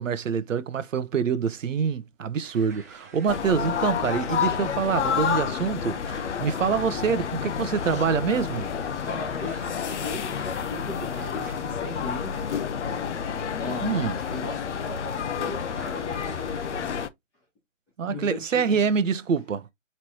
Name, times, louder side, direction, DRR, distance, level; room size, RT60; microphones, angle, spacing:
voice 1, 0.0-8.7 13.8-14.2 18.0-19.7, right 6 dB, 80° right, 0.7 m, -26 dB
sound 1, 2.4-17.1, right 3 dB, 15° right, 0.5 m, -50 dB
sound 2, 3.3-17.1, left 7 dB, 65° left, 0.7 m, -30 dB
sound 3, 5.0-8.5, left 8 dB, 90° left, 1.4 m, -48 dB
voice 2, 9.0-9.7 10.0-12.4 13.5-14.0 14.3-17.0 18.1-18.8, left 2 dB, 10° left, 1.0 m, -38 dB
4.2 x 3.2 x 2.9 m
hypercardioid pair, 155°, 38 cm